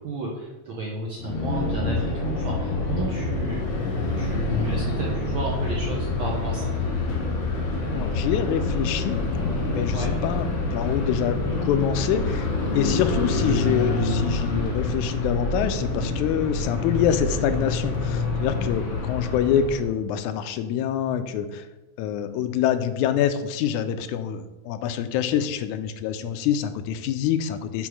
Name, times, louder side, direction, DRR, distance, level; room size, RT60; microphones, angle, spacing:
voice 1, 0.0-3.6 4.1-6.7 9.9-10.1, right 2 dB, 65° right, -3 dB, 1.2 m, -32 dB
sound 1, 1.2-19.9, left 3 dB, 65° left, 2.0 m, -26 dB
voice 2, 7.9-9.2 9.6-10.5 10.7-21.7 22.0-27.9, left 9 dB, 90° left, 10 dB, 2.0 m, -26 dB
6.3 x 3.5 x 6.1 m, 1.1 s
omnidirectional pair, 3.4 m